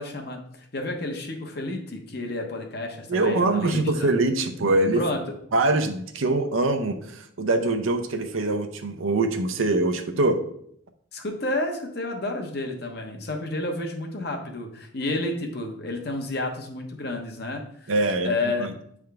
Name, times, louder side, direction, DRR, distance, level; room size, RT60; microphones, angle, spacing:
voice 1, 0.0-4.1 4.9-5.2 11.1-17.9 18.2-18.7, left 2 dB, 50° left, 3 dB, 1.0 m, -31 dB
voice 2, 3.1-5.0 5.5-10.4 17.9-18.3 18.6-18.7, right 2 dB, 90° right, 6 dB, 0.7 m, -23 dB
8.9 x 3.6 x 3.5 m, 0.68 s
head